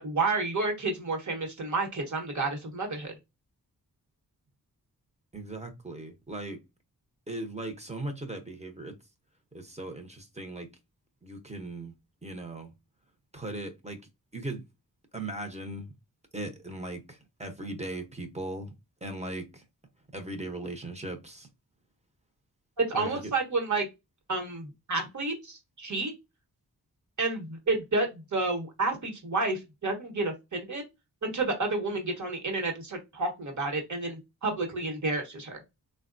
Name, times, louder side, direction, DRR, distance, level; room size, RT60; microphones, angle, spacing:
voice 1, 0.0-3.1 22.8-23.9 24.3-26.1 27.2-30.8 31.2-35.6, right 3 dB, 50° right, 1.1 m, -30 dB
voice 2, 5.3-6.6 7.3-9.0 9.5-10.7 11.2-11.9 12.2-12.7 13.3-14.0 14.3-14.6 15.1-15.9 16.3-18.7 19.0-19.6 20.1-21.5 22.9-23.3, right 2 dB, 20° right, 0.7 m, -38 dB
3.5 x 2.2 x 2.5 m
wide cardioid pair, 70°, 37 cm